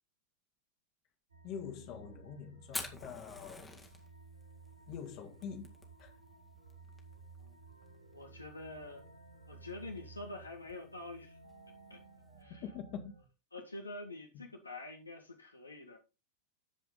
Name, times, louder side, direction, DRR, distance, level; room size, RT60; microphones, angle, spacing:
sound 1, 1.3-13.2, right 4 dB, 75° right, 2.4 m, -56 dB
voice 1, 1.4-3.8 4.9-5.7 6.0-6.1 12.6-13.2, left 7 dB, 40° left, 2.1 m, -45 dB
Fire, 2.6-12.4, left 3 dB, 10° left, 1.9 m, -50 dB
voice 2, 8.1-9.1 9.5-11.4 11.9-12.0 12.4-12.6 13.5-16.0, left 2 dB, 80° left, 1.8 m, -46 dB
13.5 x 4.9 x 3.8 m
figure-of-eight pair, 90°, 0 cm